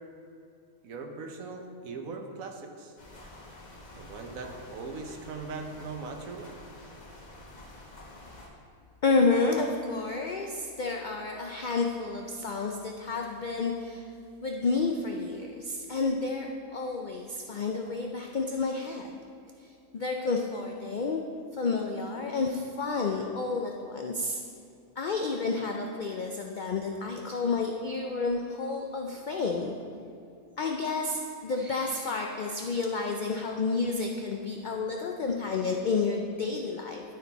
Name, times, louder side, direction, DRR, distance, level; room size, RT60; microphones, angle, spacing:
voice 1, 0.8-2.9 3.9-6.5, right 4 dB, 75° right, 4 dB, 1.2 m, -40 dB
sound 1, 3.0-8.5, left 1 dB, 35° left, 1.1 m, -48 dB
voice 2, 9.0-14.1 14.4-19.1 19.6-21.2 21.5-24.4 25.0-29.8 30.6-37.0, left 4 dB, 75° left, 2 dB, 0.4 m, -30 dB
12.0 x 4.4 x 4.1 m, 2.5 s
omnidirectional pair, 1.4 m